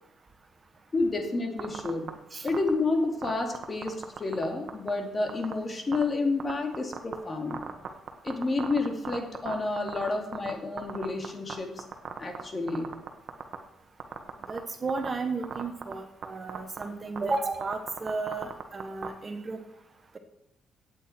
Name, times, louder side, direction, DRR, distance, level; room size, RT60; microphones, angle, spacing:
voice 1, 0.9-2.1 2.4-7.6 8.2-11.8 12.2-12.9, left 3 dB, 30° left, 3 dB, 2.5 m, -30 dB
sound 1, 1.6-2.1 2.5-2.7 3.2-4.4 4.7-4.9 5.3-5.5 5.9-6.0 6.4-7.1 7.5-10.5 10.8-11.5 11.8-12.4 12.7-13.6 14.0-14.6 14.9-15.1 15.4-15.9 16.2-16.3 16.5-16.8 17.2-17.4 17.6-19.1, right 7 dB, 55° right, 1.4 m, -35 dB
voice 2, 14.5-19.6, right 3 dB, 35° right, 6 dB, 1.4 m, -33 dB
16.0 x 8.8 x 4.5 m, 0.80 s
cardioid pair, 90°, 0 cm